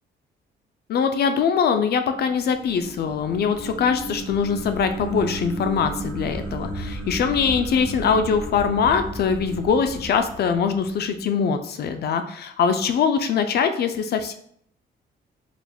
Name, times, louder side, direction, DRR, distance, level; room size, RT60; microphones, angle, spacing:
voice 1, 0.9-14.3, left 6 dB, 55° left, 8 dB, 0.4 m, -22 dB
sound 1, 2.0-11.2, right 1 dB, 10° left, 1.0 m, -34 dB
4.9 x 3.4 x 2.3 m, 0.66 s
cardioid pair, 120°, 19 cm